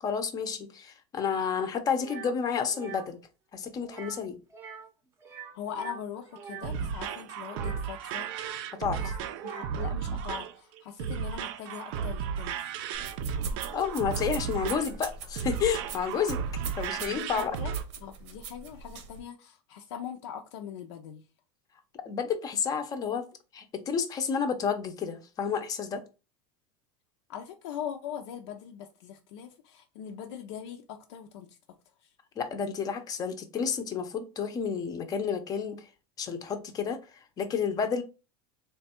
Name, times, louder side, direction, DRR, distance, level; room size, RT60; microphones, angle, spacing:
voice 1, 0.0-3.2 3.5-4.4 8.8-9.0 13.7-16.4 16.8-17.5 22.1-23.2 23.5-26.0 32.4-35.9 36.2-38.0, left 6 dB, 25° left, 0.5 m, -30 dB
sound 1, 2.0-2.3 2.7-3.1 3.8-4.2 4.5-4.9 5.2-6.7 7.5-8.6 8.9-9.8, right 5 dB, 20° right, 0.6 m, -44 dB
voice 2, 5.5-9.1 9.4-12.6 17.0-17.7 18.0-21.2 27.3-31.6, left 8 dB, 80° left, 0.5 m, -41 dB
sound 2, 6.3-17.8, right 7 dB, 65° right, 0.4 m, -34 dB
sound 3, 12.9-19.2, right 5 dB, 85° right, 0.9 m, -42 dB
3.3 x 2.3 x 4.2 m
supercardioid pair, 150°, 14 cm